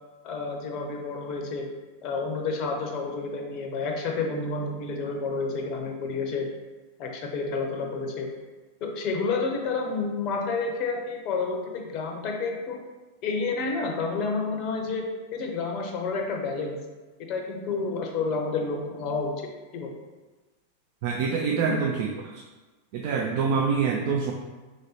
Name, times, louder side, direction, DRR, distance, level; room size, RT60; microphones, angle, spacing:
voice 1, 0.2-1.7 2.0-6.5 7.0-8.3 8.8-12.8 13.2-16.8 17.3-19.5 19.7-19.9 21.5-21.8, left 4 dB, 40° left, 2 dB, 0.6 m, -30 dB
voice 2, 21.0-22.4 22.9-24.3, right 5 dB, 50° right, 1 dB, 0.4 m, -26 dB
3.9 x 3.3 x 2.8 m, 1.2 s
figure-of-eight pair, 90°, 0 cm